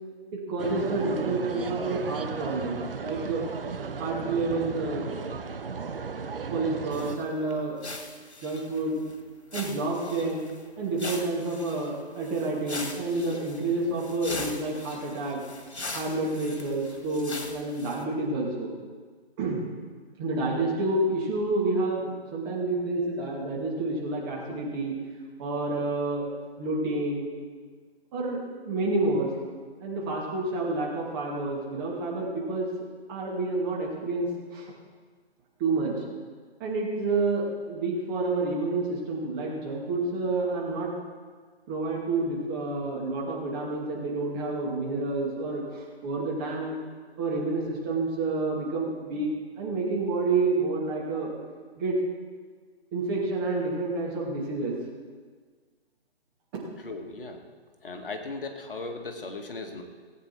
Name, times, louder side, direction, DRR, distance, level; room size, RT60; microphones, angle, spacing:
voice 1, 0.3-3.4 4.0-5.1 6.5-7.8 8.4-9.0 9.5-10.4 10.8-15.4 15.9-18.8 19.4-19.6 20.2-25.0 25.4-26.2 26.6-27.3 28.1-28.4 28.7-29.3 29.8-32.7 33.1-34.7 35.6-35.9 36.6-40.9 41.7-46.8 47.2-49.3 49.6-51.3 51.8-52.0 52.9-54.7, right 3 dB, 20° right, -3 dB, 2.3 m, -29 dB
sound 1, 0.6-7.2, right 5 dB, 60° right, 0.9 m, -35 dB
sound 2, 6.9-7.2 7.5-7.6 7.8-9.1 9.5-10.6 10.9-18.0, left 2 dB, 80° left, 1.8 m, -40 dB
voice 2, 56.8-57.4 57.8-59.8, left 3 dB, 55° left, 4 dB, 1.7 m, -37 dB
18.5 x 8.6 x 4.5 m, 1.6 s
figure-of-eight pair, 145°, 33 cm